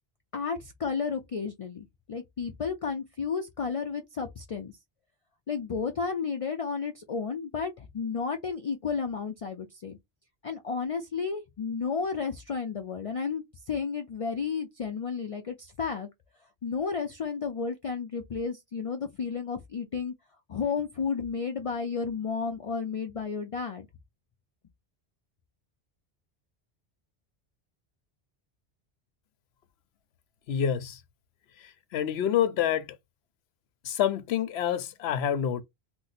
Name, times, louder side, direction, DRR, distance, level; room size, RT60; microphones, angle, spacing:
voice 1, 0.3-4.7 5.5-10.0 10.4-16.1 16.6-20.1 20.5-23.9, left 5 dB, 55° left, 0.4 m, -32 dB
voice 2, 30.5-31.0 31.6-32.9 33.8-35.6, left 9 dB, 80° left, 0.8 m, -27 dB
2.6 x 2.1 x 4.0 m
omnidirectional pair, 1.1 m